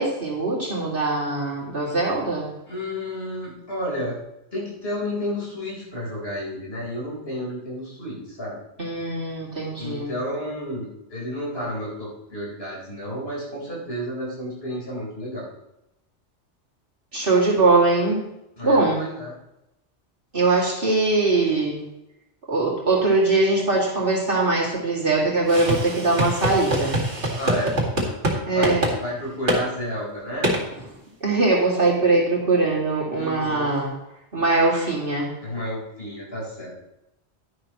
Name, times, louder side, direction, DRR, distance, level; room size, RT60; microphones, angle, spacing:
voice 1, 0.0-2.5 8.8-10.1 17.1-18.2 18.6-19.0 20.3-21.8 22.5-27.0 28.5-28.9 31.2-33.9 34.3-35.3, right 3 dB, 50° right, -4 dB, 2.6 m, -21 dB
voice 2, 2.7-4.2 4.5-8.6 9.8-15.5 18.6-19.3 27.3-27.8 28.5-30.5 33.1-33.7 35.4-36.7, equal, 55° left, -5 dB, 4.3 m, -31 dB
sound 1, 25.5-28.4 28.6-29.0 29.5-29.6 30.4-30.6, right 1 dB, 80° right, 2.3 m, -24 dB
11.0 x 10.5 x 3.0 m, 0.87 s
omnidirectional pair, 1.2 m